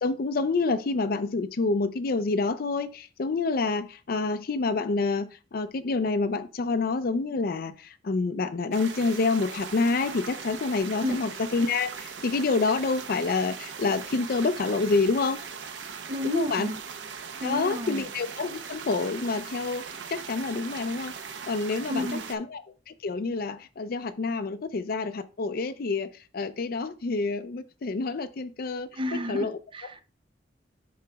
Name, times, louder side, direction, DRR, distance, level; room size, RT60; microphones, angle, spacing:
voice 1, 0.0-15.4 16.2-16.7 17.4-19.8 20.1-21.1 21.5-22.6 22.9-28.9 29.3-29.6, left 3 dB, 55° left, 0.5 m, -28 dB
sound 1, 8.7-22.4, right 6 dB, 90° right, 0.7 m, -40 dB
voice 2, 16.1-16.8 17.4-18.1 21.9-22.4 28.9-30.0, equal, 30° right, 0.5 m, -31 dB
11.5 x 3.9 x 2.3 m
head